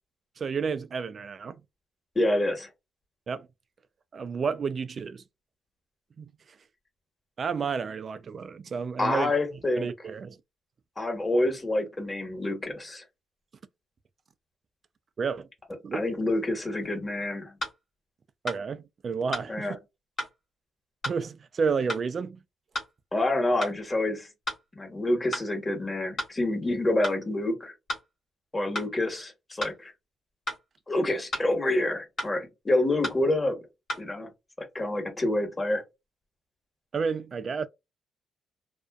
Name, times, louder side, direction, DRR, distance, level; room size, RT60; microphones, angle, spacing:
voice 1, 0.4-1.6 3.3-3.5 4.1-5.2 6.2-6.3 7.4-9.3 9.8-10.4 15.2-15.5 15.8-16.0 18.4-19.8 21.0-22.4 36.9-37.7, right 5 dB, 45° right, 0.3 m, -31 dB
voice 2, 2.1-2.7 9.0-9.9 11.0-13.0 15.9-17.5 19.5-19.7 23.1-24.3 24.7-27.7 28.5-29.9 30.9-33.6 34.0-34.3 34.7-35.8, left 1 dB, 25° left, 1.2 m, -27 dB
sound 1, 16.8-16.9 17.6-17.8 18.5-18.6 19.3-19.5 20.2-20.3 21.0-21.2 21.9-22.1 22.7-22.9 23.6-23.8 24.5-24.6 25.3-25.5 26.2-26.3 27.0-27.2 27.9-28.1 28.7-28.9 29.6-29.8 30.5-30.6 31.3-31.5 32.2-32.3 33.0-33.2 33.9-34.1, equal, 50° left, 1.0 m, -33 dB
2.4 x 2.2 x 2.3 m
cardioid pair, 90°, 0 cm